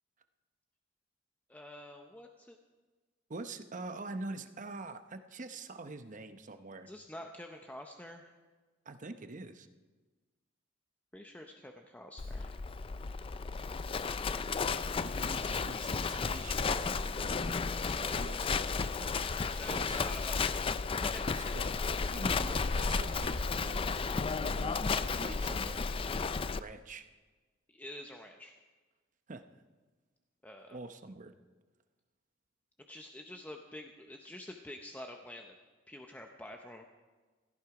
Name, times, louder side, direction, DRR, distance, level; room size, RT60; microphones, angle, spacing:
voice 1, 1.5-2.6 6.9-8.3 11.1-12.5 15.3-15.6 19.2-20.6 20.9-21.6 27.7-28.6 30.4-30.8 32.9-35.6 35.9-36.8, left 1 dB, 10° left, 3 dB, 0.7 m, -48 dB
voice 2, 3.3-6.9 8.8-9.7 15.0-17.5 18.0-19.2 19.5-20.0 21.3-21.8 22.1-26.0 26.6-27.0 29.3-29.4 30.7-31.3, right 2 dB, 40° right, 9 dB, 0.9 m, -45 dB
Livestock farm animals working animals, 12.2-26.6, left 4 dB, 30° left, 0.4 m, -33 dB
16.0 x 14.0 x 4.8 m, 1.3 s
head